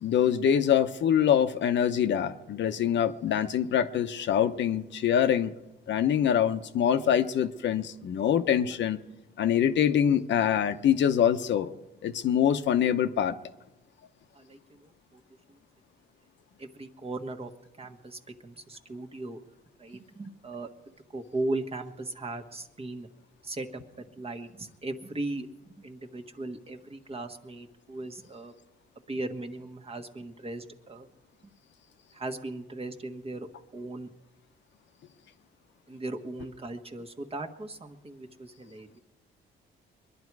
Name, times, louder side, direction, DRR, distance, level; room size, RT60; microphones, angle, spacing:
voice 1, 0.0-5.5 5.9-9.0 9.4-11.7 12.0-13.4, left 9 dB, 65° left, 9 dB, 0.9 m, -24 dB
voice 2, 14.3-15.2 15.5-15.6 16.6-17.5 17.8-19.4 19.8-20.7 21.1-23.1 23.4-28.5 29.1-31.1 32.1-33.5 33.7-34.1 35.9-39.0, right 2 dB, 30° right, 4 dB, 1.4 m, -38 dB
23.0 x 11.0 x 4.7 m, 0.99 s
cardioid pair, 90°, 20 cm